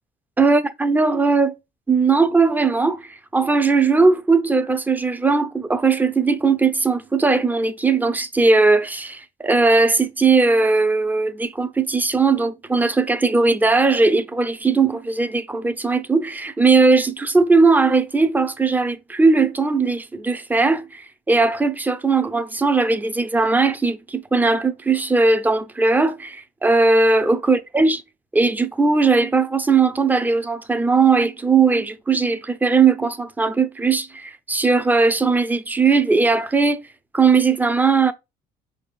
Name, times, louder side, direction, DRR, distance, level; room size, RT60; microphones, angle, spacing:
voice 1, 0.4-1.5 1.9-28.0 28.3-36.8 37.1-38.1, right 4 dB, 10° right, 0.5 m, -18 dB
4.9 x 3.4 x 2.4 m
cardioid pair, 110°, 17 cm